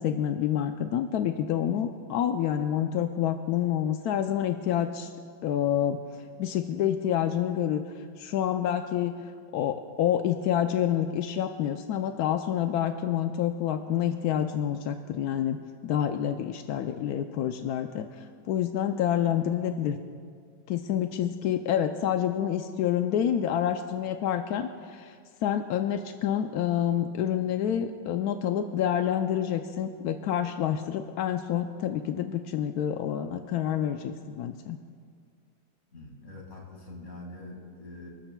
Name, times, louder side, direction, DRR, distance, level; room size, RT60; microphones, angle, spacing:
voice 1, 0.0-5.1 5.4-6.0 6.4-7.8 8.2-9.1 9.5-15.6 15.8-20.0 20.7-25.1 25.4-34.8, left 10 dB, 70° left, 7 dB, 0.9 m, -28 dB
voice 2, 35.9-38.1, left 2 dB, 40° left, -1 dB, 2.5 m, -44 dB
29.0 x 13.0 x 2.3 m, 2.1 s
omnidirectional pair, 2.0 m